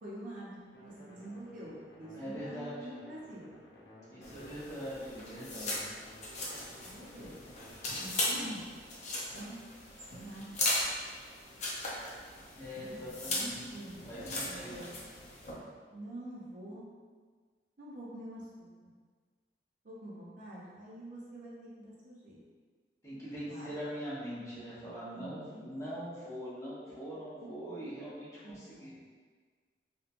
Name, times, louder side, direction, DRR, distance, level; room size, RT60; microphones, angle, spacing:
voice 1, 0.0-1.7 2.0-3.5 6.6-7.4 8.0-8.7 9.3-9.6 10.1-10.4 12.7-13.4 13.7-14.0 14.4-15.0 15.9-16.8 17.8-18.9 19.8-22.4 23.5-23.7 25.1-25.3 25.5-25.7 27.8-27.9 28.4-29.0, right 1 dB, 50° right, -6 dB, 0.6 m, -47 dB
sound 1, 0.7-8.1, left 1 dB, 85° left, 0.6 m, -55 dB
voice 2, 2.1-2.8 4.1-5.8 8.3-8.6 12.6-13.7 14.0-14.8 23.0-28.9, equal, 15° left, -10 dB, 0.8 m, -42 dB
sound 2, 4.2-15.5, left 1 dB, 40° left, 0.5 m, -38 dB
3.0 x 2.1 x 2.4 m, 1.5 s
head